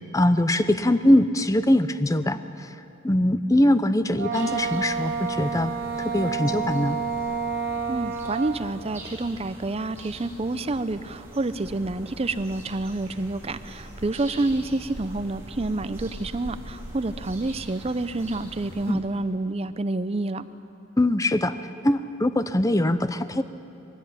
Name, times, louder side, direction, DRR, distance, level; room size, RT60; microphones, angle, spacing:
voice 1, 0.1-2.4 3.0-5.7 6.0-7.0 18.9-19.0 21.0-21.6 21.8-23.4, left 1 dB, 15° left, 12 dB, 0.6 m, -22 dB
Wind instrument woodwind instrument, 4.1-8.7, right 5 dB, 45° right, 1.7 m, -29 dB
sound 1, 4.3-18.9, right 1 dB, 10° right, 2.9 m, -42 dB
voice 2, 7.9-20.5, right 2 dB, 25° right, 12 dB, 0.5 m, -28 dB
20.5 x 16.5 x 8.8 m, 2.8 s
head